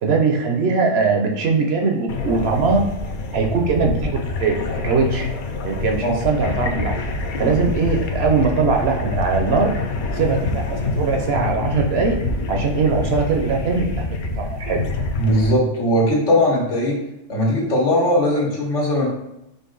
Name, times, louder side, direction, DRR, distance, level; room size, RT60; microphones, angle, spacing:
voice 1, 0.0-2.8 3.3-5.3 5.6-7.0 7.4-9.7 10.1-12.2 12.5-14.0 14.4-14.8, right 4 dB, 65° right, 3 dB, 0.8 m, -21 dB
sound 1, 2.1-15.5, left 3 dB, 60° left, 0.6 m, -26 dB
voice 2, 15.2-17.0 17.3-19.1, left 1 dB, 75° left, -3 dB, 1.6 m, -19 dB
5.3 x 2.5 x 3.8 m, 0.85 s
omnidirectional pair, 1.3 m